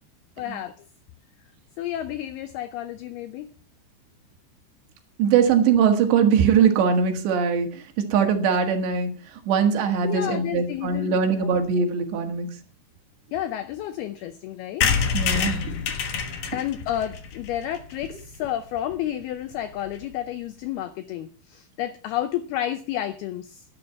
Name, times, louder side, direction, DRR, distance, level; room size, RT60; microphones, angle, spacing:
voice 1, 0.4-0.8 1.8-3.5 10.0-11.6 13.3-14.9 16.5-23.6, left 12 dB, 85° left, 12 dB, 2.2 m, -31 dB
voice 2, 5.2-9.1 9.5-12.5 15.1-15.7, right 6 dB, 70° right, 5 dB, 3.8 m, -21 dB
sound 1, 14.8-18.5 18.9-19.0 19.2-19.3 19.5-19.6 19.8-20.1, left 6 dB, 65° left, 1.7 m, -27 dB
11.5 x 11.0 x 5.7 m, 0.40 s
omnidirectional pair, 5.3 m